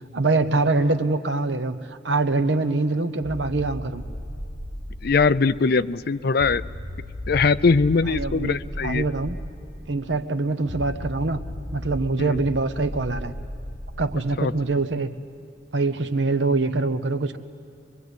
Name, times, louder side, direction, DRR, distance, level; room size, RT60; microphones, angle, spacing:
voice 1, 0.1-1.8 2.0-4.0 8.1-8.6 8.8-9.4 9.9-11.4 11.7-13.3 14.0-15.1 15.7-17.4, right 3 dB, 85° right, 10 dB, 1.0 m, -24 dB
sound 1, 3.2-5.5 6.4-9.6 10.7-14.2, left 1 dB, 25° left, 5.4 m, -35 dB
voice 2, 5.0-6.6 7.3-9.0 12.2-12.3 14.4-14.5, left 4 dB, 60° left, 15 dB, 0.5 m, -21 dB
23.5 x 23.0 x 8.3 m, 2.5 s
head